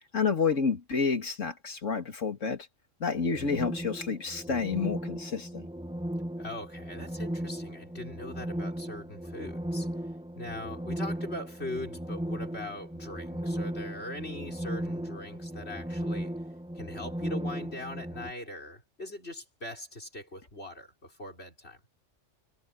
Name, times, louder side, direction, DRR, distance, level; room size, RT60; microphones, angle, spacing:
voice 1, 0.1-2.7 3.0-5.7, left 5 dB, 75° left, 2.7 m, -29 dB
sound 1, 3.1-18.3, right 1 dB, 5° right, 1.7 m, -36 dB
voice 2, 6.4-9.9 10.4-16.4 16.7-21.8, left 1 dB, 55° left, 6.0 m, -41 dB
omnidirectional pair, 1.3 m